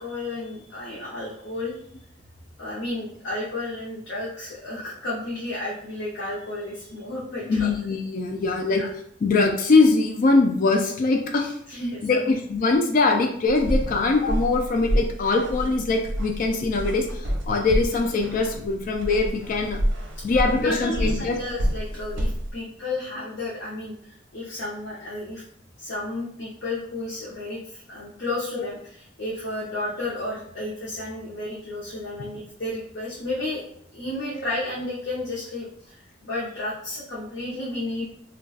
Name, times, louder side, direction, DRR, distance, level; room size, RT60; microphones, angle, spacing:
voice 1, 0.0-1.8 2.6-7.7 8.7-8.9 11.7-12.4 20.6-25.4 25.8-33.6 33.9-38.1, left 2 dB, 70° left, -6 dB, 0.7 m, -32 dB
voice 2, 7.5-8.8 9.2-11.6 12.0-19.8 20.2-21.4 28.6-28.7 34.4-34.5, left 3 dB, 45° left, 3 dB, 0.3 m, -22 dB
sound 1, 13.5-22.5, equal, 75° right, 0.6 m, -28 dB
2.3 x 2.2 x 3.9 m, 0.68 s
head